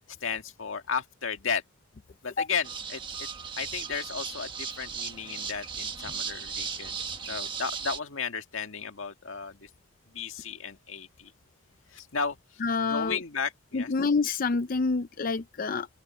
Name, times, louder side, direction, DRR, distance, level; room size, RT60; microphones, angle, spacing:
voice 1, 0.2-1.6 2.2-3.3 3.6-7.0 7.3-9.7 10.1-11.3 11.9-13.9, left 5 dB, 75° left, 1.8 m, -34 dB
sound 1, 2.6-8.0, right 6 dB, 25° right, 1.4 m, -36 dB
voice 2, 12.6-13.2 13.7-15.9, left 4 dB, 45° left, 0.4 m, -27 dB
open air
head